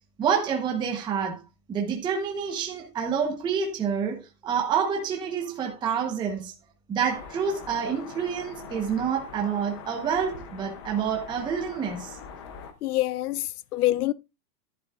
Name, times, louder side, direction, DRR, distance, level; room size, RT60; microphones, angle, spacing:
voice 1, 0.2-1.4 1.7-6.5 6.9-12.2, right 7 dB, 10° right, 0.9 m, -28 dB
sound 1, 7.0-12.7, left 6 dB, 20° left, 0.5 m, -43 dB
voice 2, 12.8-14.1, left 16 dB, 65° left, 0.7 m, -26 dB
11.0 x 11.0 x 2.3 m
supercardioid pair, 165°, 50 cm